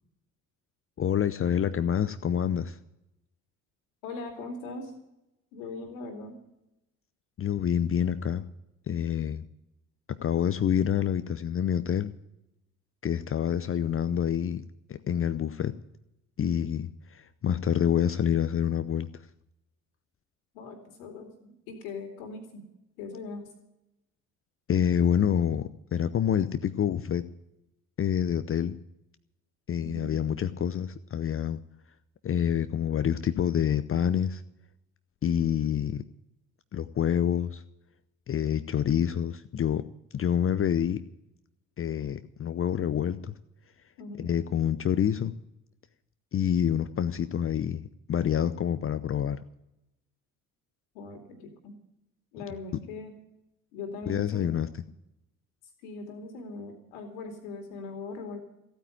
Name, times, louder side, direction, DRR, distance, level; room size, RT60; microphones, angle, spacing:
voice 1, 1.0-2.8 7.4-8.4 8.9-9.5 10.1-12.1 13.0-14.6 14.9-15.7 16.4-19.2 24.7-27.2 28.0-28.8 29.7-31.6 32.2-34.4 35.2-36.0 36.7-37.6 38.3-39.8 40.1-41.0 41.8-43.3 44.2-45.3 46.3-49.4 54.1-54.7, left 9 dB, 30° left, 12 dB, 0.7 m, -27 dB
voice 2, 4.0-4.9 5.5-6.4 20.5-22.6 23.0-23.5 29.8-30.1 44.0-44.3 50.9-51.8 52.3-53.1 53.7-54.5 55.8-58.4, left 3 dB, 70° left, 5 dB, 2.7 m, -40 dB
15.5 x 9.1 x 9.2 m, 0.85 s
figure-of-eight pair, 50°, 42 cm